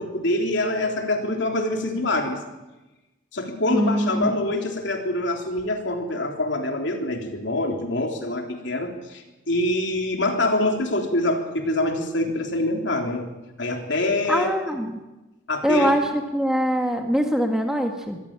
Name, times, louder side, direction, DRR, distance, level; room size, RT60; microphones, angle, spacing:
voice 1, 0.0-2.4 3.3-13.3 13.6-14.5 15.5-15.9, left 1 dB, 55° left, 3 dB, 3.5 m, -25 dB
voice 2, 3.7-4.3 14.3-15.0 15.6-18.2, equal, 5° right, 3 dB, 1.8 m, -23 dB
24.5 x 15.5 x 8.9 m, 1.1 s
head